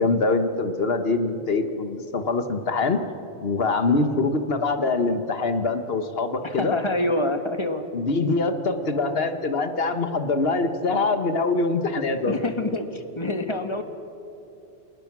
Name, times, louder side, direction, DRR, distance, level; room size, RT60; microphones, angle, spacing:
voice 1, 0.0-3.0 3.4-6.8 7.9-12.4, left 3 dB, 55° left, 8 dB, 1.5 m, -24 dB
voice 2, 6.4-7.9 8.7-9.3 12.3-13.8, left 1 dB, 25° left, 7 dB, 1.3 m, -27 dB
27.5 x 18.5 x 6.1 m, 2.9 s
omnidirectional pair, 1.2 m